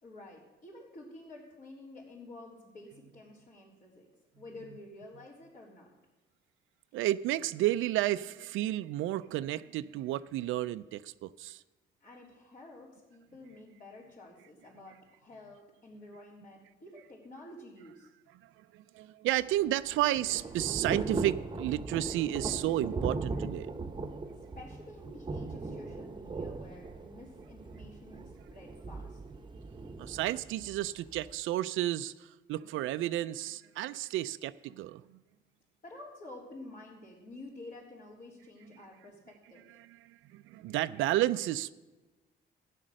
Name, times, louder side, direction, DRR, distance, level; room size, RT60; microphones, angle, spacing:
voice 1, 0.0-4.1 4.4-5.9 12.0-18.1 24.6-29.2 35.8-39.6, left 2 dB, 50° left, -6 dB, 3.7 m, -50 dB
voice 2, 6.9-11.6 18.6-23.7 30.0-35.0 39.8-41.7, right 14 dB, 85° right, 12 dB, 0.4 m, -32 dB
Thunder / Rain, 19.4-31.3, right 3 dB, 25° right, 1.0 m, -39 dB
13.0 x 10.0 x 6.3 m, 1.2 s
cardioid pair, 90°, 20 cm